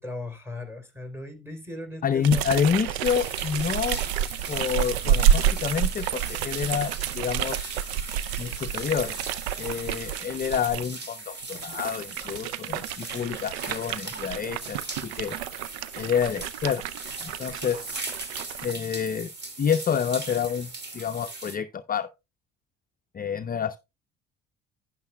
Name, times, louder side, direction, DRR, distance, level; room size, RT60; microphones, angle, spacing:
voice 1, 0.0-2.4, left 2 dB, 10° right, 3.2 m, -38 dB
voice 2, 2.0-4.0 4.5-7.8 8.4-9.1 9.6-15.4 16.0-16.8 17.2-17.9 18.6-19.3 19.6-22.1 23.1-23.8, left 7 dB, 30° left, 0.6 m, -28 dB
sound 1, 2.2-10.9 11.4-18.7, right 10 dB, 85° right, 0.6 m, -29 dB
sound 2, 3.0-21.6, right 3 dB, 35° right, 2.6 m, -39 dB
12.0 x 9.3 x 2.2 m
hypercardioid pair, 60°, 30 cm